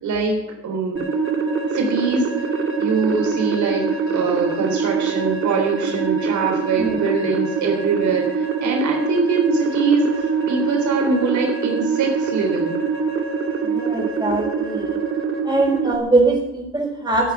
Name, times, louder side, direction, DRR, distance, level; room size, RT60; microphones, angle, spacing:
voice 1, 0.0-1.1 1.7-2.3 2.8-10.1 10.5-12.7, right 4 dB, 80° right, 2 dB, 3.7 m, -23 dB
sound 1, 1.0-16.0, right 5 dB, 45° right, 2.2 m, -24 dB
voice 2, 6.8-7.1 13.6-15.0 15.4-17.3, right 2 dB, 15° right, -1 dB, 6.0 m, -21 dB
14.5 x 8.6 x 9.3 m, 0.91 s
cardioid pair, 100°, 29 cm